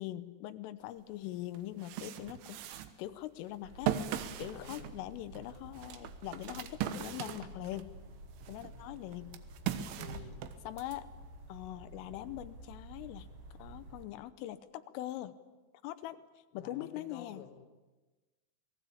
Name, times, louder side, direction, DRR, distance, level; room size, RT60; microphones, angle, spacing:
voice 1, 0.0-4.0 4.4-7.9 8.5-9.4 10.7-11.1 11.5-13.3 13.6-15.4 15.8-16.2 16.5-17.5, left 14 dB, 85° left, 12 dB, 3.5 m, -42 dB
sound 1, 1.0-1.1 1.6-7.9 8.4-11.0, right 11 dB, 80° right, 3.6 m, -39 dB
sound 2, 3.6-14.1, right 1 dB, 50° right, 6.2 m, -51 dB
voice 2, 4.5-4.9 10.0-10.4 16.5-17.7, left 7 dB, 55° left, 5 dB, 2.3 m, -51 dB
28.0 x 19.0 x 8.6 m, 1.2 s
omnidirectional pair, 5.7 m